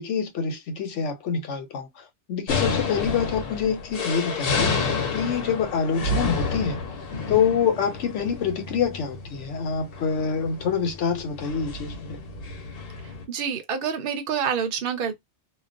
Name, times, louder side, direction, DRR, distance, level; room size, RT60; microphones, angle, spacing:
voice 1, 0.0-6.8 7.3-12.2, left 6 dB, 85° left, 1.0 m, -26 dB
sound 1, 2.5-13.2, left 4 dB, 60° left, 0.9 m, -30 dB
voice 2, 13.3-15.1, right 7 dB, 60° right, 0.8 m, -27 dB
2.3 x 2.2 x 2.5 m
omnidirectional pair, 1.2 m